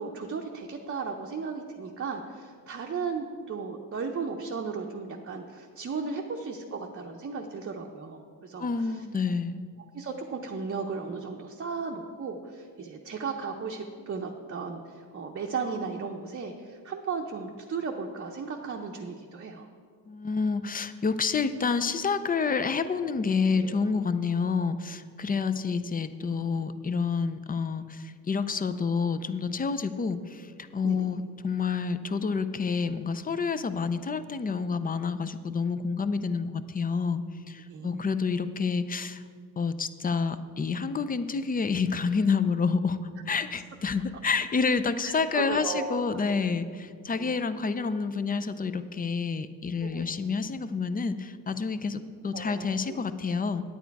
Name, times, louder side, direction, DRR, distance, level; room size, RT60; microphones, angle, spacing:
voice 1, 0.0-9.1 9.9-19.7 23.5-23.8 25.3-25.4 30.8-31.1 37.7-38.0 45.0-46.5 47.2-47.4 49.8-50.2 52.3-53.0, right 5 dB, 35° right, 1 dB, 0.7 m, -35 dB
voice 2, 8.6-9.6 20.1-39.2 39.6-43.0 43.3-53.6, left 5 dB, 25° left, 12 dB, 0.4 m, -28 dB
9.2 x 9.0 x 4.6 m, 2.1 s
cardioid pair, 105°, 37 cm